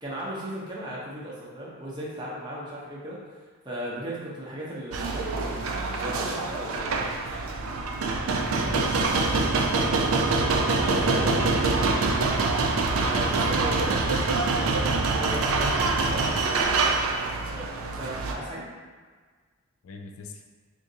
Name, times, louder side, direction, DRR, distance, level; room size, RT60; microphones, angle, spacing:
voice 1, 0.0-6.9 10.8-11.4 12.9-17.1 17.5-18.7, right 1 dB, 20° right, -7 dB, 0.7 m, -37 dB
sound 1, 4.9-18.3, right 3 dB, 75° right, 0.4 m, -25 dB
voice 2, 8.6-10.0 10.7-12.1 19.8-20.3, left 4 dB, 75° left, 3 dB, 0.3 m, -39 dB
2.6 x 2.5 x 3.8 m, 1.5 s
head